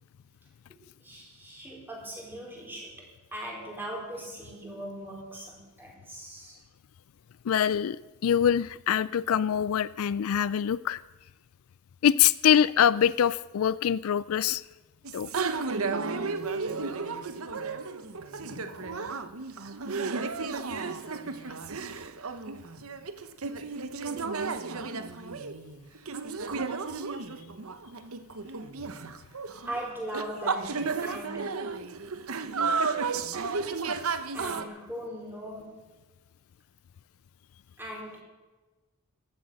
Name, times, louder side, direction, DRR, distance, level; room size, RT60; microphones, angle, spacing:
voice 1, 1.0-6.6 29.6-31.7 34.3-35.8 37.8-38.2, right 1 dB, 10° right, -2 dB, 4.5 m, -40 dB
voice 2, 7.4-8.0 8.2-11.0 12.0-14.6 15.1-15.3 18.4-19.0, left 9 dB, 70° left, 19 dB, 0.4 m, -24 dB
sound 1, 15.0-34.6, right 4 dB, 70° right, 0.9 m, -33 dB
15.0 x 11.5 x 6.4 m, 1.2 s
head